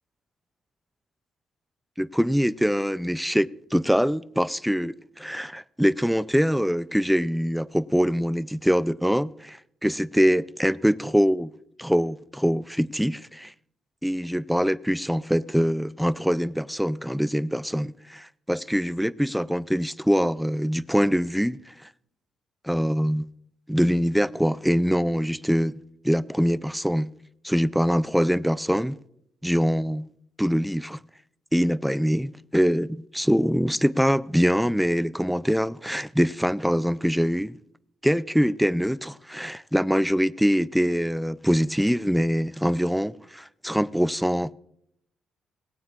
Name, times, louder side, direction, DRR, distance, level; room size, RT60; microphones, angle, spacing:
voice 1, 2.0-11.5 11.8-13.5 14.0-21.9 22.6-23.3 23.7-27.1 27.4-29.0 29.4-30.1 30.4-31.0 31.5-37.6 38.0-44.5, equal, ahead, 0.4 m, -24 dB
19.5 x 9.3 x 2.4 m
cardioid pair, 90°, 0 cm